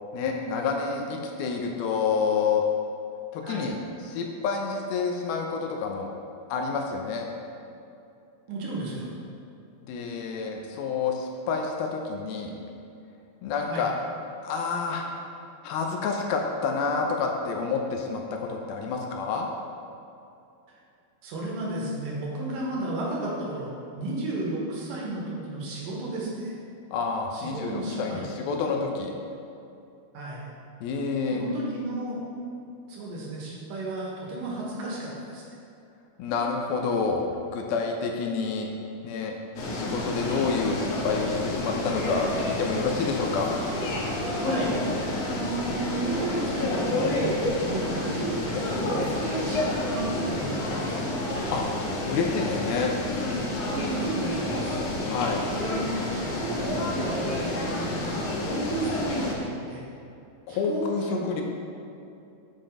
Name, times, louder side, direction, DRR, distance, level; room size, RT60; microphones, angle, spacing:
voice 1, 0.1-2.6 3.3-3.8 4.0-6.1 6.5-7.3 9.8-12.5 13.4-13.9 14.4-15.1 15.6-19.5 26.9-29.2 30.8-31.4 36.2-37.3 37.5-38.7 39.0-39.3 39.7-43.5 51.5-51.7 52.1-52.9 55.0-55.4 60.5-61.4, left 5 dB, 80° left, 2 dB, 2.6 m, -28 dB
voice 2, 8.5-9.1 13.7-13.9 21.2-26.6 27.3-28.2 30.1-30.5 31.2-32.2 32.9-35.4 44.4-44.7 45.2-51.0 53.6-54.8 55.5-59.8 60.5-61.4, right 2 dB, 70° right, -4 dB, 2.9 m, -33 dB
sound 1, 39.6-59.3, left 1 dB, 65° left, 1.7 m, -29 dB
7.6 x 5.3 x 5.3 m, 2.6 s
omnidirectional pair, 4.3 m